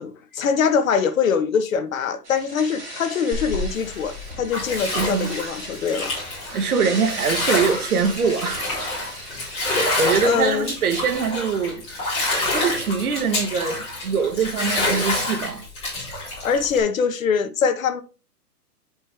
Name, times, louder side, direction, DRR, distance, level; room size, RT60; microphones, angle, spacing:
voice 1, 0.0-6.1 10.2-10.7 16.4-18.0, left 6 dB, 55° left, 1.4 m, -23 dB
sound 1, 2.2-10.0, right 1 dB, 15° right, 3.2 m, -37 dB
Bathtub (filling or washing), 3.3-16.8, left 2 dB, 10° left, 3.6 m, -27 dB
voice 2, 4.9-5.3 6.5-8.7 9.6-11.8 12.5-15.7, right 5 dB, 65° right, 1.5 m, -23 dB
9.0 x 5.3 x 3.4 m
hypercardioid pair, 165°, 47 cm